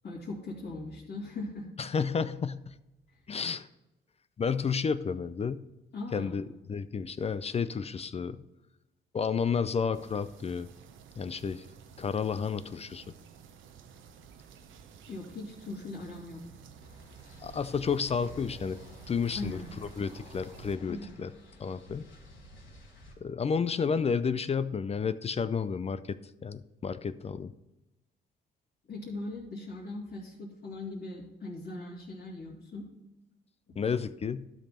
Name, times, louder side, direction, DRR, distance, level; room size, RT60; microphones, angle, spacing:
voice 1, 0.0-1.7 5.9-6.3 15.1-16.4 19.3-19.6 20.9-21.1 28.9-32.8, left 2 dB, 55° left, -6 dB, 2.6 m, -39 dB
voice 2, 1.8-2.7 3.3-3.7 4.4-5.6 6.1-8.4 9.1-10.7 11.2-11.6 12.0-13.0 17.4-18.8 19.1-21.3 21.6-22.0 23.2-27.5 33.8-34.4, left 6 dB, 30° left, 13 dB, 0.4 m, -31 dB
sound 1, 9.9-20.8, right 7 dB, 75° right, 0.9 m, -53 dB
sound 2, 16.8-23.1, left 1 dB, 85° left, 3.2 m, -51 dB
12.0 x 5.3 x 4.3 m, 0.96 s
cardioid pair, 90°, 20 cm